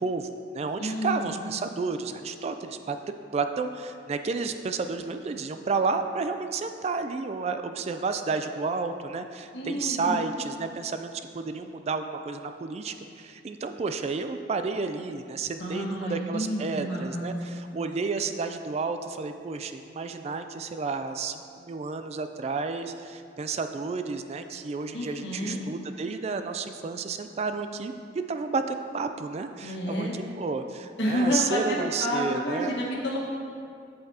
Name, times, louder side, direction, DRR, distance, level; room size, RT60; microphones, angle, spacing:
voice 1, 0.0-3.0 3.3-27.9 28.3-30.1 30.4-32.8, right 4 dB, 35° right, 8 dB, 0.3 m, -31 dB
voice 2, 0.8-1.3 9.5-10.2 15.6-17.4 24.9-25.6 29.6-30.2 31.0-33.2, equal, 85° left, -3 dB, 1.4 m, -29 dB
8.2 x 7.9 x 2.8 m, 2.4 s
head